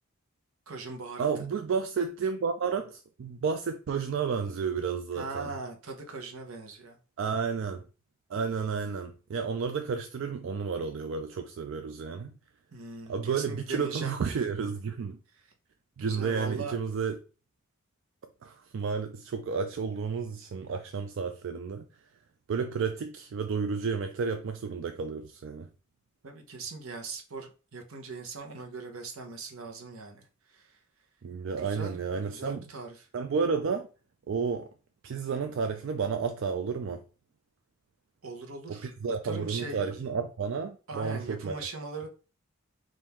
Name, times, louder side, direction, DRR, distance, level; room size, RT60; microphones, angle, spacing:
voice 1, 0.7-1.3 5.1-7.0 12.7-14.1 16.0-16.8 26.2-30.3 30.5-30.7 31.6-33.1 38.2-38.9 39.2-40.1 40.9-42.1, right 4 dB, 80° right, 0.9 m, -40 dB
voice 2, 1.2-5.5 7.2-7.8 8.3-12.3 13.1-15.2 16.0-17.2 18.4-21.8 22.5-25.7 31.2-32.6 33.1-33.9 34.3-34.7 35.0-37.0 38.7-41.7, right 5 dB, 65° right, 0.4 m, -31 dB
3.7 x 2.6 x 4.3 m
head